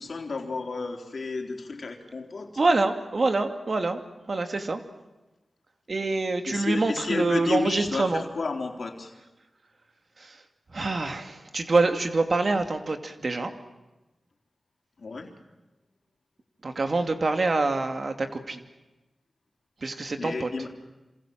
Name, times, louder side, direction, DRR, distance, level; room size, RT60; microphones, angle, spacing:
voice 1, 0.0-2.5 6.5-9.1 15.0-15.3 20.2-20.7, left 3 dB, 65° left, 3 dB, 3.7 m, -31 dB
voice 2, 2.6-4.0 4.3-4.8 5.9-8.2 10.2-10.4 10.7-13.5 16.6-18.7 19.8-20.5, right 3 dB, 60° right, 6 dB, 2.6 m, -26 dB
27.5 x 27.0 x 7.7 m, 1.1 s
cardioid pair, 40°, 0 cm